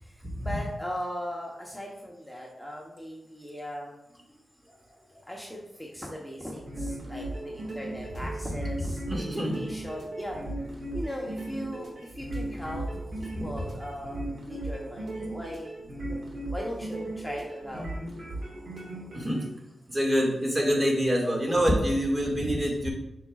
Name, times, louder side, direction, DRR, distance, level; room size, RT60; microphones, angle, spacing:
voice 1, 0.1-4.0 5.3-12.9 13.2-15.7 16.0-16.2 16.5-17.9, equal, 5° left, -3 dB, 1.0 m, -39 dB
sound 1, 6.5-19.4, right 1 dB, 70° right, 1.8 m, -37 dB
voice 2, 9.1-9.6 13.4-13.5 19.1-19.5 19.9-22.9, equal, 30° right, -2 dB, 2.0 m, -26 dB
6.8 x 5.7 x 2.4 m, 0.86 s
cardioid pair, 75°, 0 cm